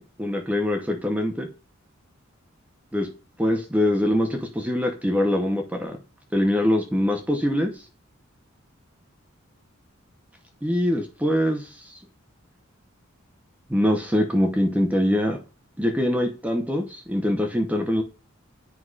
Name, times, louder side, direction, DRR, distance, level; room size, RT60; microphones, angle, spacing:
voice 1, 0.2-1.5 2.9-3.1 3.4-5.9 6.3-7.7 10.6-11.6 13.7-15.4 15.8-18.0, left 1 dB, 5° right, 3 dB, 0.8 m, -23 dB
9.6 x 4.8 x 2.4 m, 0.33 s
head